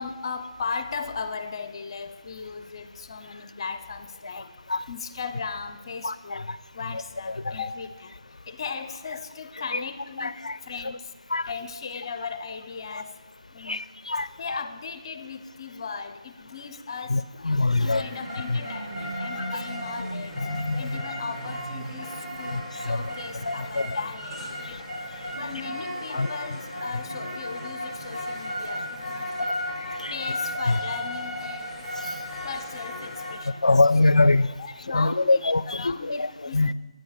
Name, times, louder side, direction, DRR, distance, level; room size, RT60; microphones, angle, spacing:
voice 1, 0.0-4.5 4.9-6.5 6.7-11.1 11.4-13.2 13.5-13.8 14.4-17.2 17.7-20.5 20.8-24.9 25.4-29.5 30.1-31.9 32.4-33.8 34.4-36.7, left 5 dB, 40° left, 10 dB, 0.7 m, -37 dB
voice 2, 6.0-6.4 10.2-10.5 11.3-11.4 13.7-13.8 14.1-14.6 17.1-18.0 20.4-20.9 22.5-22.6 22.9-23.0 23.5-23.9 26.1-26.3 30.0-30.1 33.6-34.5 34.9-36.3 36.5-36.7, left 2 dB, 80° left, 17 dB, 0.4 m, -23 dB
sound 1, 17.8-33.4, equal, 10° right, 3.3 m, -34 dB
8.9 x 8.8 x 4.8 m, 1.2 s
figure-of-eight pair, 155°, 4 cm